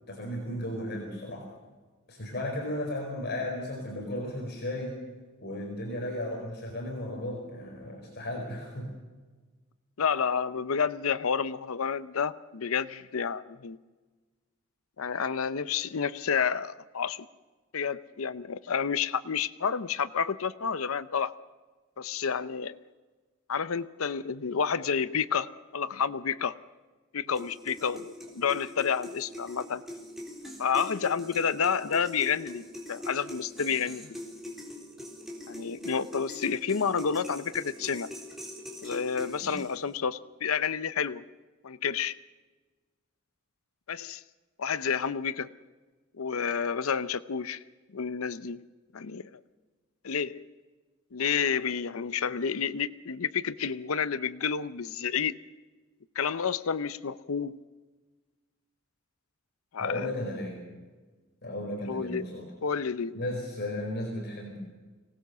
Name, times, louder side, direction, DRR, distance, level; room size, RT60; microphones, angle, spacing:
voice 1, 0.1-1.5 2.1-5.0 5.4-8.9 39.4-39.5 59.8-60.6 61.4-62.5 63.1-64.6, left 1 dB, 50° left, 0 dB, 4.8 m, -35 dB
voice 2, 10.0-13.8 15.0-17.3 17.7-21.3 22.0-22.8 23.5-26.6 27.1-29.8 30.6-34.2 35.5-38.1 38.8-41.2 41.6-42.2 43.9-44.2 44.6-45.5 46.1-47.6 47.9-48.6 48.9-49.3 50.0-50.4 51.1-55.4 56.2-57.6 59.7-60.1 61.9-62.3 62.6-63.2, left 6 dB, 75° left, 15 dB, 0.7 m, -30 dB
sound 1, 27.3-40.0, left 1 dB, ahead, 3.9 m, -42 dB
25.0 x 18.5 x 6.8 m, 1.3 s
head